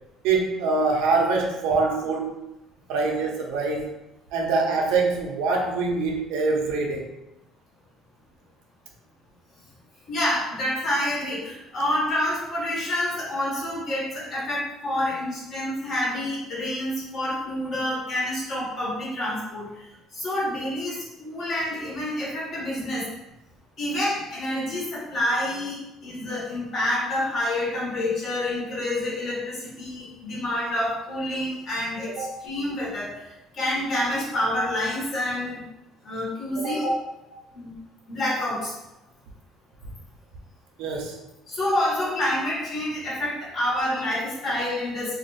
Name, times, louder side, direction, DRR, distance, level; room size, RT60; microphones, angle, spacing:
voice 1, 0.2-2.4 2.9-3.9 4.3-7.1 32.2-32.3 36.6-36.8 40.8-41.2, right 3 dB, 85° right, 0 dB, 0.7 m, -24 dB
voice 2, 10.1-19.8 20.1-23.1 23.8-33.2 33.5-35.6 36.0-37.0 37.5-37.7 38.1-38.7 41.5-45.2, left 1 dB, 35° left, -6 dB, 1.3 m, -28 dB
2.7 x 2.4 x 4.0 m, 0.92 s
cardioid pair, 165°, 0 cm